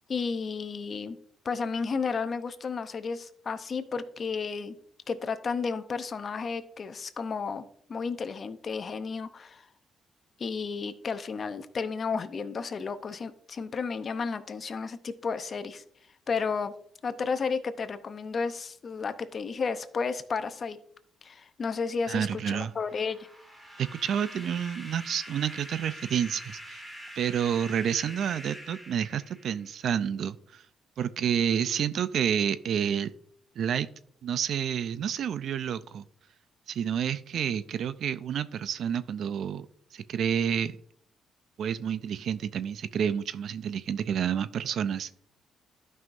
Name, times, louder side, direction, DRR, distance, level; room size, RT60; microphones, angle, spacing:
voice 1, 0.1-1.2 1.4-4.8 5.1-9.6 10.4-15.8 16.3-16.7 17.0-20.8 21.2-23.2, left 5 dB, 45° left, 10 dB, 0.7 m, -32 dB
voice 2, 22.1-22.7 23.8-26.8 27.2-30.6 31.0-33.1 33.6-33.9 34.2-36.0 36.7-39.7 39.9-40.8 41.6-45.2, right 8 dB, 65° right, 15 dB, 0.4 m, -29 dB
sound 1, 22.8-29.8, equal, 10° right, 1.8 m, -45 dB
12.5 x 5.6 x 2.6 m, 0.65 s
cardioid pair, 90°, 0 cm